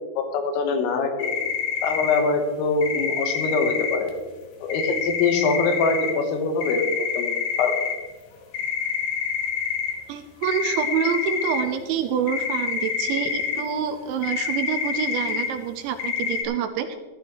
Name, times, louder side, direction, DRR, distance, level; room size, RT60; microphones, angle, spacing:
voice 1, 0.2-1.3 1.8-4.1 4.6-6.8 7.2-7.8, left 4 dB, 90° left, 5 dB, 4.0 m, -24 dB
sound 1, 1.2-2.2 2.8-4.1 4.7-6.1 6.6-7.9 8.5-9.9 10.4-11.6 12.3-13.6 14.2-15.5 16.0-16.4, left 7 dB, 75° left, 1.9 m, -27 dB
voice 2, 10.1-17.0, right 8 dB, 80° right, 7 dB, 2.9 m, -27 dB
16.0 x 12.5 x 3.2 m, 1.4 s
omnidirectional pair, 5.7 m